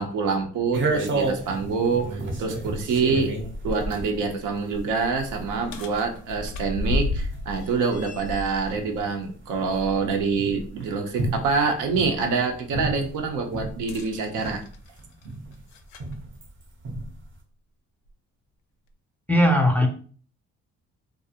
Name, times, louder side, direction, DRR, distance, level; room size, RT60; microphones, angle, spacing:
voice 1, 0.0-3.3 3.6-14.6, right 4 dB, 80° right, 4 dB, 0.6 m, -26 dB
sound 1, 0.7-13.9 14.3-16.5 16.8-17.3, right 2 dB, 40° right, 0.6 m, -32 dB
sound 2, 4.7-10.7 11.1-11.3 13.7-16.2 17.1-17.2 18.1-18.2, left 2 dB, 75° left, 0.4 m, -34 dB
voice 2, 19.3-19.9, equal, 5° left, 2 dB, 0.4 m, -18 dB
2.5 x 2.0 x 2.7 m, 0.43 s
cardioid pair, 90°, 30 cm